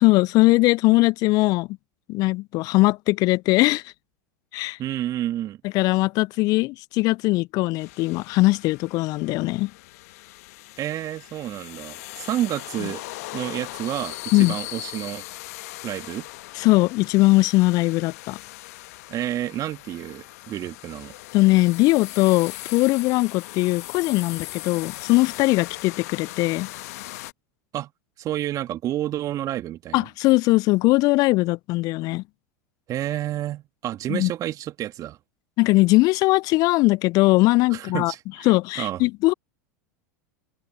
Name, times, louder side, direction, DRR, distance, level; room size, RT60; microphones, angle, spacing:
voice 1, 0.0-1.7 2.1-3.9 4.5-4.8 5.6-9.7 14.3-14.6 16.5-18.4 21.3-26.7 29.9-32.2 34.1-34.3 35.6-38.1 38.5-39.3, left 21 dB, 45° left, 0.3 m, -20 dB
voice 2, 4.8-5.6 10.8-13.0 13.3-15.2 15.8-16.3 19.1-21.1 27.7-27.9 28.2-30.1 32.9-35.2 37.7-38.5 38.8-39.0, right 13 dB, 40° right, 2.0 m, -30 dB
sound 1, 7.8-27.3, left 20 dB, 60° left, 1.2 m, -39 dB
open air
hypercardioid pair, 90°, 9 cm